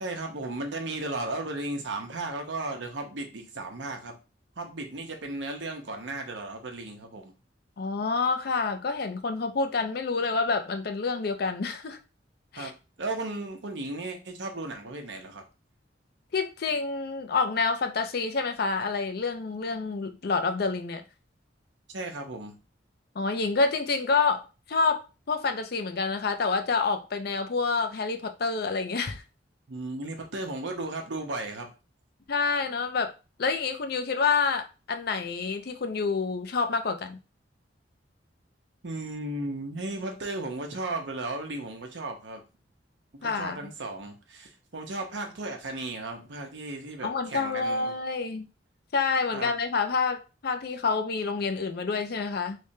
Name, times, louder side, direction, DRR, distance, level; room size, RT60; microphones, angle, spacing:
voice 1, 0.0-4.1 4.6-7.3 12.6-12.7 13.0-15.4 21.9-22.6 29.7-31.7 38.8-42.4 43.2-47.9 49.3-49.5, right 2 dB, 70° right, 0.8 m, -35 dB
voice 2, 7.8-12.0 12.5-12.7 16.3-21.0 23.2-29.2 32.3-33.1 33.4-37.2 43.2-43.7 47.0-48.4 48.9-52.6, left 4 dB, 55° left, 0.5 m, -28 dB
3.3 x 3.3 x 2.7 m
head